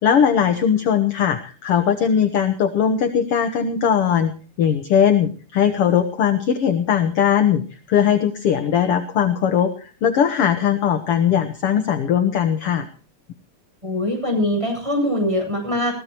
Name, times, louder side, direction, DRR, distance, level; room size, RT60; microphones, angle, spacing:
voice 1, 0.0-4.3 4.6-7.6 7.9-12.9, left 8 dB, 55° left, 8 dB, 1.8 m, -19 dB
voice 2, 13.8-15.9, left 1 dB, 10° right, 3 dB, 8.0 m, -22 dB
21.5 x 17.5 x 3.0 m, 0.39 s
omnidirectional pair, 3.7 m